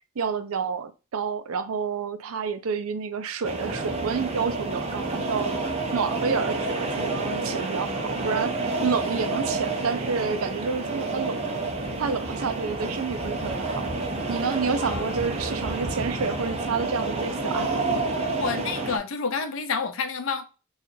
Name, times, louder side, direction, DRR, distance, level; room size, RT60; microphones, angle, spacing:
voice 1, 0.2-5.6 5.9-11.6 12.0-13.9 14.3-18.0, right 5 dB, 90° right, 0.5 m, -29 dB
sound 1, 3.4-19.0, right 2 dB, 30° right, 0.6 m, -29 dB
voice 2, 14.8-15.1 18.4-20.4, left 5 dB, 70° left, 0.5 m, -29 dB
4.2 x 2.4 x 2.7 m
head